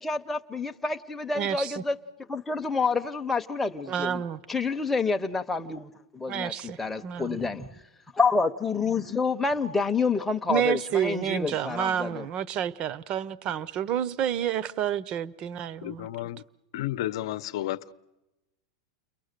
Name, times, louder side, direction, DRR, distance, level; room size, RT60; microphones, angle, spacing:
voice 1, 0.0-1.9 2.3-4.2 4.5-6.5 6.8-7.7 8.1-12.2, left 4 dB, 5° left, 0.8 m, -28 dB
voice 2, 1.3-1.8 3.9-4.4 6.3-7.4 10.5-16.1, right 9 dB, 35° right, 0.8 m, -29 dB
voice 3, 15.8-16.4 16.7-17.9, left 14 dB, 65° left, 0.8 m, -32 dB
30.0 x 22.5 x 6.7 m
supercardioid pair, 145°, 3 cm